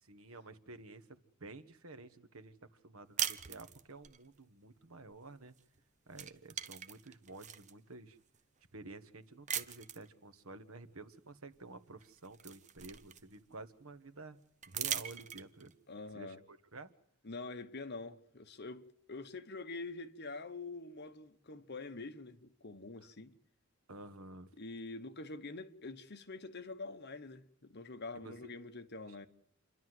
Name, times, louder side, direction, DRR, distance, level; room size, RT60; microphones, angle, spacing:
voice 1, 0.0-2.5 2.8-5.5 6.1-8.2 8.7-14.4 14.7-15.7 16.1-16.9 23.9-24.5 28.1-28.5, right 2 dB, 75° right, 1.5 m, -51 dB
sound 1, 3.2-4.2 5.6-5.8 6.1-7.7 8.3-8.4 9.5-10.1 11.5-11.6 12.0-13.5 14.6-15.7, right 9 dB, 35° right, 1.0 m, -40 dB
voice 2, 15.9-16.4 17.2-23.3 24.6-29.3, left 3 dB, 50° left, 1.3 m, -46 dB
28.5 x 12.0 x 7.9 m
head